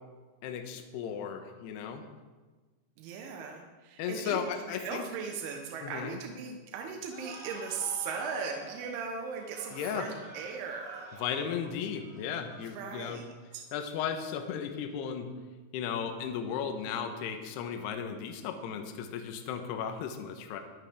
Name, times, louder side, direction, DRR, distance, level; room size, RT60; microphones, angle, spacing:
voice 1, 0.4-2.0 4.0-5.1 5.8-6.2 9.7-10.1 11.2-13.2 13.7-15.3 15.7-20.6, left 7 dB, 75° left, 6 dB, 2.8 m, -35 dB
voice 2, 3.0-11.1 12.6-13.6, right 6 dB, 85° right, 2 dB, 3.5 m, -38 dB
sound 1, 7.1-13.5, right 1 dB, 25° right, 3.1 m, -49 dB
23.0 x 9.1 x 3.5 m, 1.3 s
omnidirectional pair, 5.3 m